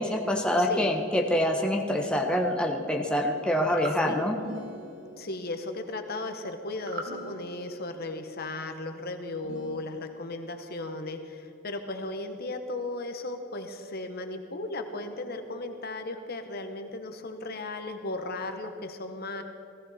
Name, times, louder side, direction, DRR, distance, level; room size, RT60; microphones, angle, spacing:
voice 1, 0.0-4.4, left 1 dB, 5° left, 0 dB, 1.0 m, -26 dB
voice 2, 0.6-0.9 4.0-4.3 5.2-19.4, left 2 dB, 55° left, 6 dB, 1.2 m, -36 dB
sound 1, 1.8-2.9 4.4-5.6 7.0-8.1 9.4-10.4, right 1 dB, 85° right, 1.8 m, -47 dB
sound 2, 3.6-4.0 6.8-7.2, right 2 dB, 55° right, 1.6 m, -38 dB
17.5 x 15.5 x 4.3 m, 2.8 s
head